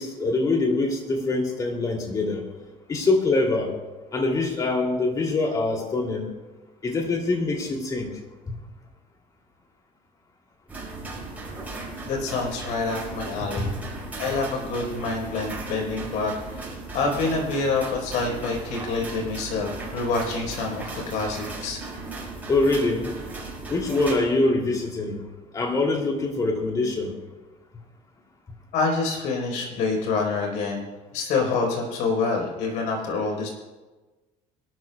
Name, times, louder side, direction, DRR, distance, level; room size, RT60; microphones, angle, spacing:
voice 1, 0.0-2.4 2.9-3.7 4.1-6.3 6.8-8.1 8.5-8.6 13.4-13.7 22.5-23.2 23.7-25.2 25.5-27.2, left 2 dB, 25° left, 1 dB, 2.9 m, -24 dB
sound 1, 10.7-24.1, right 3 dB, 10° right, 5.4 m, -36 dB
voice 2, 12.1-13.7 14.2-21.8 28.7-30.9 31.1-33.5, left 4 dB, 70° left, 1 dB, 4.5 m, -27 dB
25.5 x 13.0 x 2.4 m, 1.2 s
cardioid pair, 140°, 14 cm